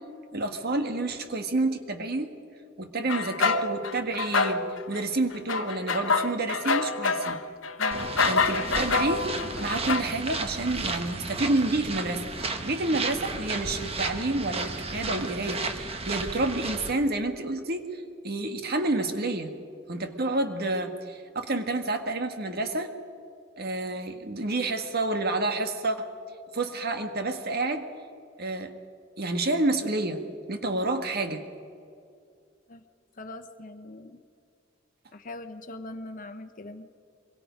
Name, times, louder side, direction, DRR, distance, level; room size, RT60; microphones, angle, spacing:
voice 1, 0.3-2.3 2.8-7.4 8.3-9.3 9.6-19.5 19.9-22.9 23.6-26.1 26.5-27.9 28.4-28.7 29.2-30.2 30.5-31.4, right 2 dB, 55° right, 6 dB, 1.7 m, -29 dB
sound 1, 3.1-5.0 5.3-10.0, left 4 dB, 90° left, 1.0 m, -27 dB
sound 2, 7.9-16.9, right 3 dB, 30° right, 1.3 m, -33 dB
voice 2, 33.2-34.2 35.1-36.9, left 2 dB, 45° left, 8 dB, 1.1 m, -41 dB
24.5 x 22.5 x 5.2 m, 2.4 s
head